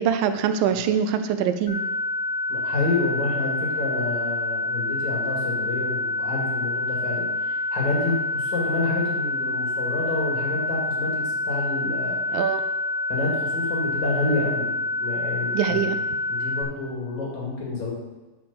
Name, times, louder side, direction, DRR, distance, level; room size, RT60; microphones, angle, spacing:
voice 1, 0.0-1.8 12.3-12.6 15.5-16.0, right 8 dB, 85° right, 9 dB, 2.3 m, -23 dB
sound 1, 1.7-16.6, left 2 dB, 15° left, 1.5 m, -27 dB
voice 2, 2.5-12.2 12.4-12.5 13.1-14.7 15.0-15.9 16.3-17.9, left 3 dB, 60° left, -3 dB, 3.0 m, -28 dB
9.6 x 4.6 x 6.9 m, 1.1 s
omnidirectional pair, 3.9 m